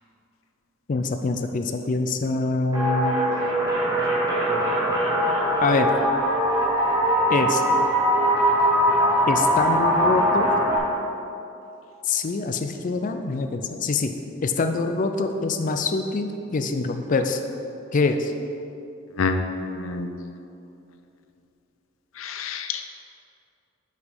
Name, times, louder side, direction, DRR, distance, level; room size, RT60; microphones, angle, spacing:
voice 1, 0.9-3.1 5.6-5.9 7.3-7.6 9.3-10.5 12.0-14.1 14.4-17.4 17.9-18.3, left 3 dB, 40° left, 6 dB, 0.4 m, -24 dB
sound 1, 2.7-10.8, equal, 20° right, 1.1 m, -21 dB
voice 2, 19.2-20.1 22.2-22.8, left 4 dB, 90° left, 7 dB, 0.6 m, -27 dB
6.6 x 5.1 x 5.4 m, 2.7 s
head